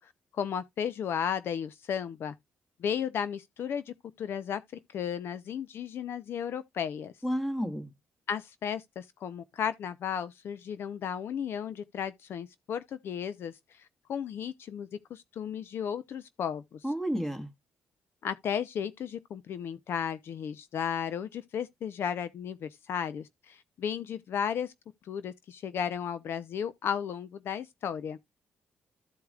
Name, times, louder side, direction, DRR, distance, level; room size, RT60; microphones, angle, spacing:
voice 1, 0.0-2.3 2.8-4.6 4.9-7.1 8.3-16.9 18.2-24.7 25.1-28.2, left 8 dB, 60° left, 0.6 m, -34 dB
voice 2, 7.2-7.9 16.8-17.5, equal, 5° left, 1.6 m, -31 dB
14.0 x 4.7 x 2.3 m
cardioid pair, 120°, 4 cm